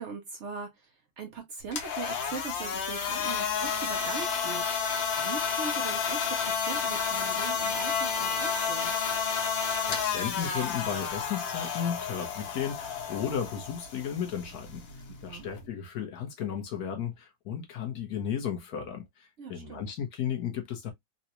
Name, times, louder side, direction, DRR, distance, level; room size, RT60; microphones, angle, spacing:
voice 1, 0.0-4.7 5.2-8.9 15.3-15.5 19.4-19.8, right 5 dB, 85° right, 0.6 m, -40 dB
sound 1, 1.6-15.7, left 6 dB, 90° left, 1.6 m, -31 dB
voice 2, 9.8-14.8 15.2-19.0 19.5-20.9, left 8 dB, 60° left, 1.2 m, -34 dB
3.9 x 2.2 x 2.8 m
omnidirectional pair, 2.0 m